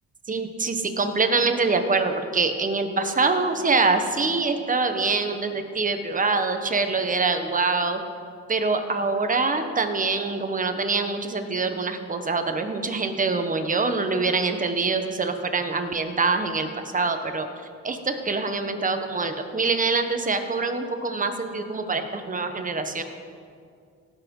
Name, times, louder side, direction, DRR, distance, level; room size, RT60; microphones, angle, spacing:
voice 1, 0.3-8.0 8.5-17.5 17.8-23.0, right 3 dB, 25° right, 7 dB, 1.1 m, -25 dB
17.5 x 6.2 x 5.4 m, 2.3 s
cardioid pair, 90°, 30 cm